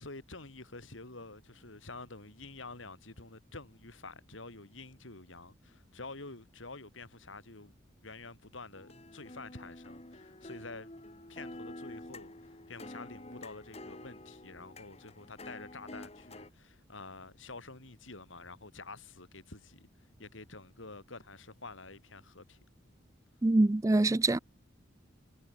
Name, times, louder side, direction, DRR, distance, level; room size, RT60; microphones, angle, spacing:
voice 1, 0.0-7.7 8.0-10.9 11.3-22.6, left 3 dB, 80° left, 3.3 m, -48 dB
sound 1, 8.7-16.5, left 1 dB, 30° left, 2.7 m, -48 dB
voice 2, 23.4-24.4, right 2 dB, 15° right, 0.4 m, -25 dB
head